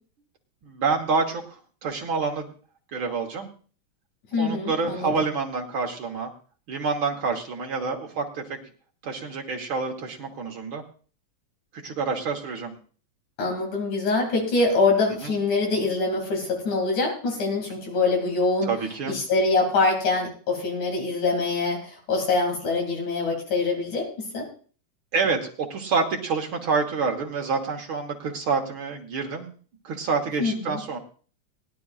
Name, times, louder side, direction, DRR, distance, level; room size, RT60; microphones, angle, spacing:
voice 1, 0.6-2.5 2.9-3.5 4.4-6.3 6.7-8.4 9.0-10.8 11.7-12.7 15.2-15.3 18.6-19.2 25.1-29.5 29.8-31.0, right 4 dB, 55° right, 1 dB, 1.8 m, -27 dB
voice 2, 4.3-5.1 13.4-18.7 19.1-24.5 30.4-30.8, left 3 dB, 85° left, 0 dB, 3.9 m, -24 dB
19.5 x 11.5 x 2.4 m, 0.40 s
omnidirectional pair, 3.3 m